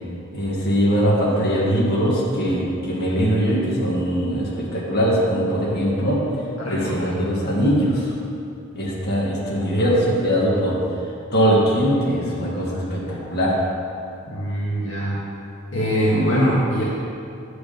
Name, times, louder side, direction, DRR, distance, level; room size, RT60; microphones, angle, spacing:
voice 1, 0.3-6.2 6.6-8.1 8.7-10.8 11.3-13.6, equal, 55° left, -6 dB, 1.8 m, -21 dB
voice 2, 6.6-7.2 14.3-15.2 15.7-16.8, equal, 70° left, -7 dB, 1.4 m, -22 dB
9.2 x 4.9 x 5.1 m, 2.5 s
head